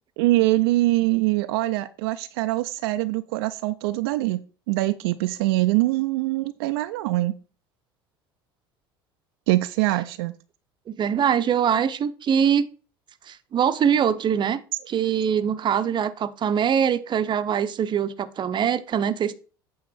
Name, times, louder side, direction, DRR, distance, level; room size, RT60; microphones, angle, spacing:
voice 1, 0.2-4.4 4.7-7.4 9.5-10.3, right 18 dB, 70° right, 0.5 m, -23 dB
voice 2, 10.9-12.7 13.3-14.6 14.9-19.3, right 8 dB, 35° right, 0.7 m, -23 dB
8.5 x 3.9 x 6.0 m
hypercardioid pair, 70°, 13 cm